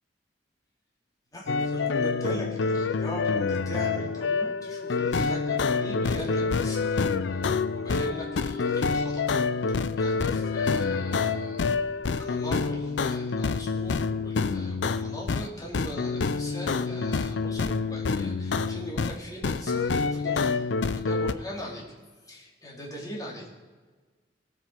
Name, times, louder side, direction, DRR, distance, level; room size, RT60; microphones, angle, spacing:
voice 1, 1.3-7.0 7.3-9.2 9.6-11.7 12.1-21.8 22.2-23.5, equal, 20° left, -3 dB, 2.4 m, -40 dB
sound 1, 1.5-15.5 15.7-19.2 19.4-21.3, left 4 dB, 80° left, 0.5 m, -27 dB
18.5 x 7.6 x 4.5 m, 1.4 s
head